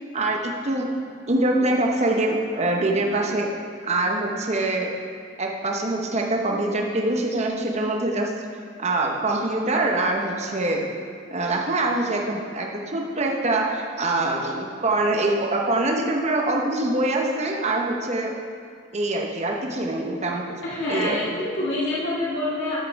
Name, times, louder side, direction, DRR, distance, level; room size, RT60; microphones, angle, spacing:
voice 1, 0.1-0.9 1.3-3.5 3.8-4.9 5.4-8.3 8.8-10.9 11.3-18.3 18.9-20.5 20.9-21.2, right 2 dB, 35° right, 0 dB, 0.9 m, -24 dB
voice 2, 20.6-22.8, left 1 dB, 60° left, -7 dB, 2.1 m, -26 dB
10.5 x 7.5 x 4.6 m, 2.3 s
head